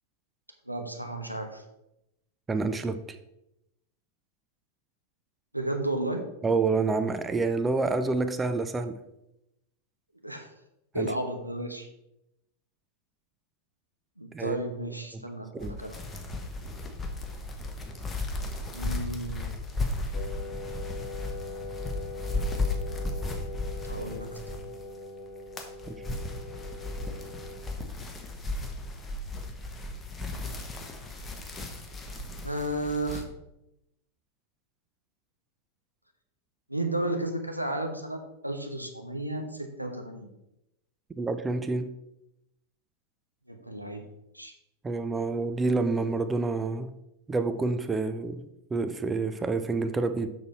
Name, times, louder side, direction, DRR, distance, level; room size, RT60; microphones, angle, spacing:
voice 1, 0.7-1.6 5.5-6.3 10.2-10.5 10.9-11.9 14.2-16.0 18.7-19.5 23.8-24.7 32.4-33.3 36.7-40.3 43.5-44.0 44.3-44.5, right 1 dB, 90° right, 4 dB, 1.0 m, -33 dB
voice 2, 2.5-3.0 6.4-9.0 10.9-11.1 14.3-14.6 15.1-15.2 15.5-15.7 25.9-26.0 41.2-41.9 44.8-46.9 47.3-50.3, right 3 dB, 15° right, 10 dB, 0.5 m, -28 dB
sound 1, 15.6-25.0 25.3-33.2, left 2 dB, 15° left, 1.2 m, -35 dB
Wind instrument woodwind instrument, 20.1-27.7, left 2 dB, 40° left, 1.1 m, -41 dB
6.8 x 6.3 x 4.3 m, 0.87 s
figure-of-eight pair, 90°, 0 cm